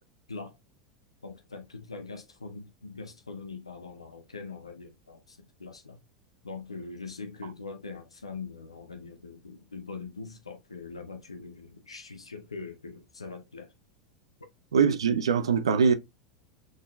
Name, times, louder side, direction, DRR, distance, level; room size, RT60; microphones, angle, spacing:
voice 1, 1.2-6.0 6.4-13.7, left 4 dB, 85° left, 0.6 m, -42 dB
voice 2, 14.7-15.9, right 6 dB, 75° right, 0.5 m, -22 dB
6.3 x 3.7 x 2.2 m
figure-of-eight pair, 85°, 3 cm